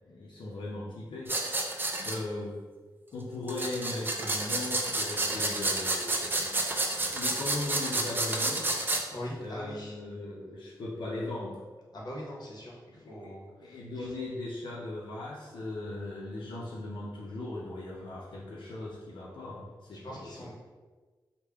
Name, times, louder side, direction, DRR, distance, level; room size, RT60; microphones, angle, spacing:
voice 1, 0.1-1.4 2.0-2.6 3.1-6.8 7.1-8.7 9.4-11.6 12.9-13.3 13.6-20.5, left 2 dB, 90° left, -6 dB, 0.5 m, -38 dB
sound 1, 1.3-2.2 3.5-9.0, right 2 dB, 25° right, 0.4 m, -30 dB
voice 2, 9.1-9.9 11.9-14.1 19.9-20.5, equal, 55° left, -4 dB, 0.9 m, -42 dB
3.4 x 2.1 x 3.4 m, 1.4 s
wide cardioid pair, 115°, 8 cm